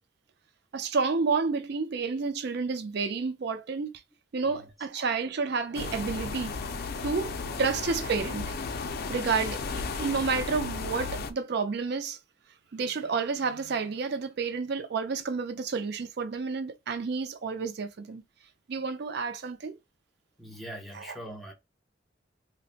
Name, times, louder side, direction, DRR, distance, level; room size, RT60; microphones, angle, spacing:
voice 1, 0.7-3.9 4.3-6.6 7.0-8.6 9.1-12.2 12.7-18.2 18.7-19.8 20.9-21.2, right 4 dB, 55° right, 0.4 m, -30 dB
sound 1, 5.7-11.3, left 4 dB, 50° left, 0.4 m, -34 dB
voice 2, 20.4-21.5, equal, ahead, 0.6 m, -42 dB
4.0 x 2.0 x 2.4 m
head